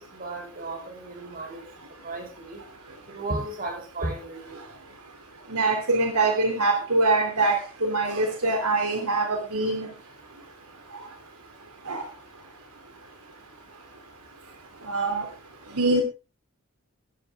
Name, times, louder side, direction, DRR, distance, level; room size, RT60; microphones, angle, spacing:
voice 1, 0.0-1.6 2.0-2.6 3.1-4.6, right 2 dB, 40° right, 3 dB, 5.7 m, -34 dB
voice 2, 5.5-9.9 11.9-12.0 14.8-15.3 15.7-16.0, right 2 dB, 85° right, 4 dB, 3.1 m, -24 dB
15.5 x 12.0 x 3.6 m, 0.31 s
head